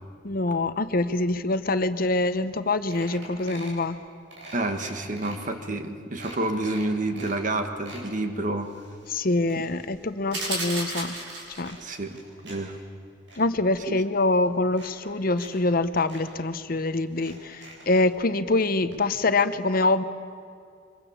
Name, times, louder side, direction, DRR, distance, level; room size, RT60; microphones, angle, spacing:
voice 1, 0.2-4.0 9.1-11.1 11.6-11.8 13.4-20.0, left 2 dB, 50° left, 11 dB, 0.9 m, -25 dB
sound 1, 2.2-2.3 2.5-2.6 2.9-3.8 4.3-5.4 5.8-5.9 6.2-7.4 7.7-8.1 8.6-10.1 10.3-11.1 11.6-12.6 12.9-13.4 14.2-14.3 14.7-15.5 15.8-15.9 16.1-16.2 17.1-18.0 18.9-19.0 19.3-19.4, right 2 dB, 85° right, 7.5 m, -46 dB
voice 2, 4.5-8.7 9.5-9.6 11.8-12.2 12.4-12.8 13.9-14.0, right 2 dB, 45° right, 7 dB, 1.6 m, -29 dB
sound 2, 10.3-11.8, right 2 dB, 70° right, 6.3 m, -32 dB
28.0 x 24.5 x 7.3 m, 2.2 s
head